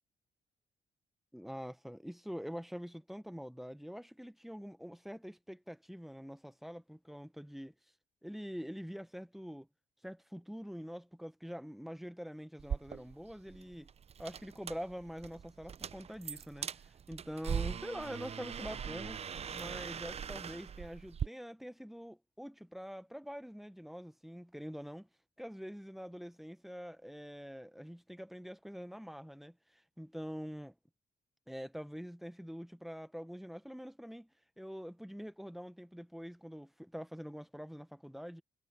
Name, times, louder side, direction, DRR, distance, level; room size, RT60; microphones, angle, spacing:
voice 1, 1.3-7.7 8.2-9.7 10.0-13.9 14.2-19.2 19.5-25.1 25.4-30.7 31.5-34.3 34.6-38.4, equal, ahead, 1.0 m, -45 dB
sound 1, 12.6-21.3, right 7 dB, 40° right, 0.5 m, -41 dB
cardioid pair, 85°, 16 cm